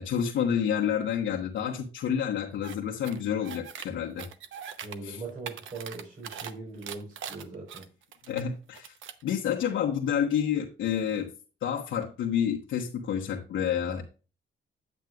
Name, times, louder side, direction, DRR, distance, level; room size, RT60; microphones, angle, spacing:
voice 1, 0.0-4.3 5.0-5.2 8.3-8.9 9.2-11.3 11.6-14.0, left 8 dB, 75° left, 1.2 m, -29 dB
sound 1, 2.6-2.8 3.0-3.9 4.2-5.0 5.3-6.5 6.8-8.4 8.7-9.2, right 8 dB, 80° right, 0.9 m, -41 dB
voice 2, 4.8-7.9, right 3 dB, 45° right, 3.9 m, -40 dB
9.2 x 8.2 x 2.4 m
cardioid pair, 180°, 20 cm